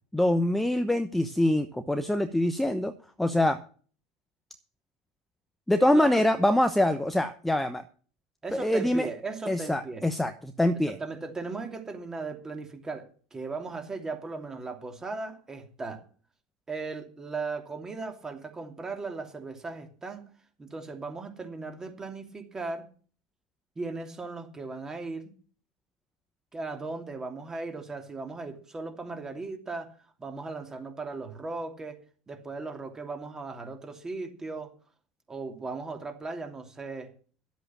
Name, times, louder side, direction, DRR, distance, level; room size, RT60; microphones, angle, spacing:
voice 1, 0.1-2.9 3.2-3.6 5.7-7.8 8.5-9.1 9.5-11.0, left 1 dB, 5° left, 8 dB, 0.9 m, -24 dB
voice 2, 5.9-6.2 8.4-10.0 10.9-16.0 16.7-20.2 20.6-22.9 23.8-25.3 26.5-29.9 30.2-32.0 32.3-34.7 35.3-37.1, right 3 dB, 20° right, 5 dB, 2.8 m, -37 dB
11.5 x 8.0 x 7.4 m, 0.42 s
hypercardioid pair, 95°, 3 cm